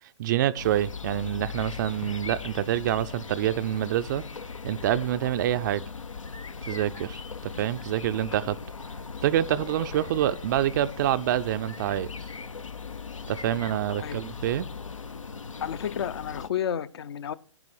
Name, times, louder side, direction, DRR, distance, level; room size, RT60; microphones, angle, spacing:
voice 1, 0.2-4.2 4.6-5.8 6.7-8.6 9.2-12.1 13.3-14.7, right 12 dB, 40° right, 0.5 m, -26 dB
sound 1, 0.6-16.5, left 5 dB, 80° left, 0.8 m, -39 dB
voice 2, 15.6-17.3, left 9 dB, 55° left, 0.7 m, -31 dB
11.0 x 9.8 x 4.4 m
figure-of-eight pair, 120°, 16 cm